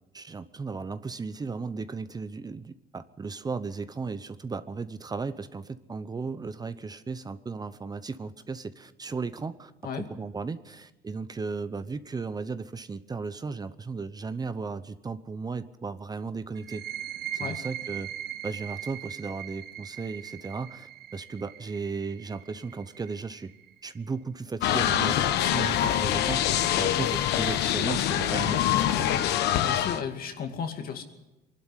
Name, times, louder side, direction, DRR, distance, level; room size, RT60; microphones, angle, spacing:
voice 1, 0.1-9.7 10.2-16.8 17.3-18.1 18.4-23.5 23.8-29.1, right 4 dB, 25° right, 13 dB, 0.8 m, -35 dB
sound 1, 16.6-24.0, right 11 dB, 70° right, 0.9 m, -40 dB
sound 2, 24.6-30.0, left 11 dB, 80° left, 1.1 m, -25 dB
voice 2, 26.8-27.1 29.6-31.0, left 7 dB, 60° left, 6 dB, 2.4 m, -35 dB
22.5 x 12.0 x 9.8 m, 1.0 s
cardioid pair, 110°, 17 cm